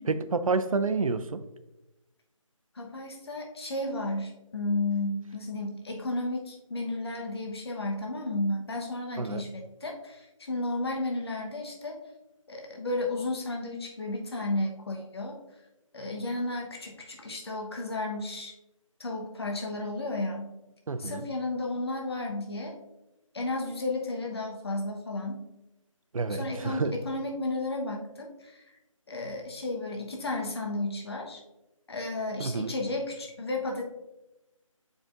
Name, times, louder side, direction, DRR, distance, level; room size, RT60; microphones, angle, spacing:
voice 1, 0.0-1.4 9.2-9.4 20.9-21.3 26.1-26.9 32.4-32.7, right 4 dB, 80° right, 12 dB, 0.6 m, -29 dB
voice 2, 2.7-12.0 12.5-15.4 15.9-18.5 19.0-20.5 21.0-22.7 23.3-25.4 26.3-28.6 29.1-31.4 31.9-33.8, left 2 dB, 50° left, 1 dB, 1.0 m, -33 dB
7.6 x 5.0 x 2.5 m, 0.96 s
figure-of-eight pair, 175°, 17 cm